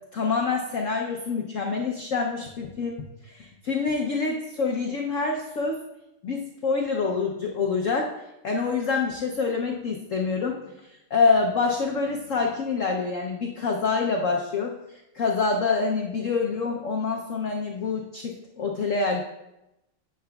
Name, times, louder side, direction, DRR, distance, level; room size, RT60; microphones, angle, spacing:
voice 1, 0.1-5.8 6.2-8.1 8.4-14.8 15.1-19.2, left 4 dB, 80° left, 1 dB, 0.7 m, -26 dB
10.0 x 7.8 x 2.3 m, 0.92 s
omnidirectional pair, 2.2 m